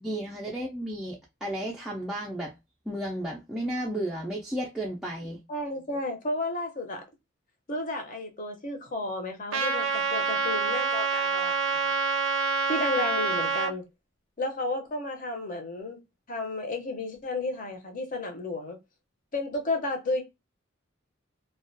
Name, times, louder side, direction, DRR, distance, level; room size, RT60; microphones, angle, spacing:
voice 1, 0.0-2.5 2.9-5.4, right 1 dB, 5° right, 0.3 m, -33 dB
voice 2, 5.5-7.0 7.7-11.8 12.7-13.8 14.4-16.0 16.3-18.8 19.3-20.2, left 2 dB, 45° left, 0.7 m, -32 dB
Trumpet, 9.5-13.7, right 4 dB, 90° right, 0.5 m, -27 dB
2.3 x 2.1 x 2.6 m
head